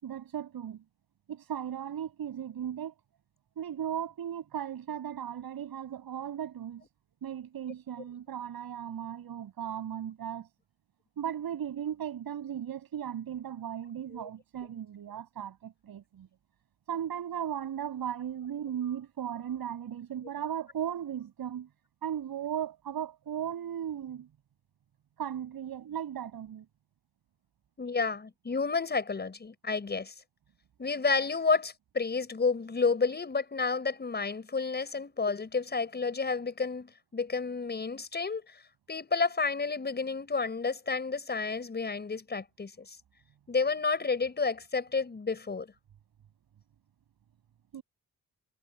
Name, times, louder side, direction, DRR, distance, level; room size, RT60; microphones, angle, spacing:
voice 1, 0.0-0.8 1.3-2.9 3.6-6.8 7.2-10.5 11.2-16.3 16.9-21.7 22.0-24.3 25.2-26.7 47.7-47.8, right 9 dB, 80° right, 7.2 m, -36 dB
voice 2, 27.8-30.1 30.8-38.4 38.9-43.0 43.5-45.7, left 4 dB, 30° left, 6.0 m, -30 dB
wide cardioid pair, 165°, 36 cm